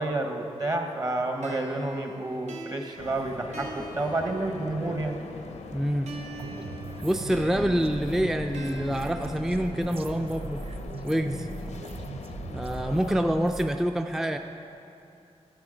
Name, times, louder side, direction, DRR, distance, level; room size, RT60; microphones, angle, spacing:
voice 1, 0.0-5.2, right 2 dB, 35° right, 4 dB, 1.0 m, -30 dB
sound 1, 1.4-5.1 6.1-10.1, right 2 dB, 90° right, 0.9 m, -43 dB
sound 2, 3.0-13.3, left 4 dB, 80° left, 0.6 m, -42 dB
voice 2, 5.7-6.1 7.0-10.6 11.0-11.5 12.5-14.4, equal, 5° right, 6 dB, 0.3 m, -26 dB
sound 3, 6.4-13.8, right 3 dB, 55° right, 0.5 m, -40 dB
10.5 x 7.4 x 5.0 m, 2.7 s
wide cardioid pair, 80°, 12 cm